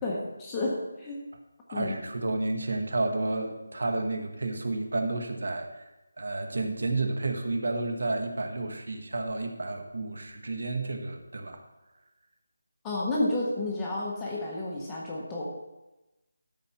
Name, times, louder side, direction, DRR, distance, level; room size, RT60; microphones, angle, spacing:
voice 1, 0.0-1.2 1.7-2.0 12.8-15.4, left 2 dB, 5° left, -4 dB, 0.8 m, -31 dB
voice 2, 1.7-5.9 6.2-11.6, right 2 dB, 55° right, 5 dB, 1.2 m, -31 dB
13.0 x 4.3 x 5.7 m, 1.0 s
figure-of-eight pair, 180°, 0 cm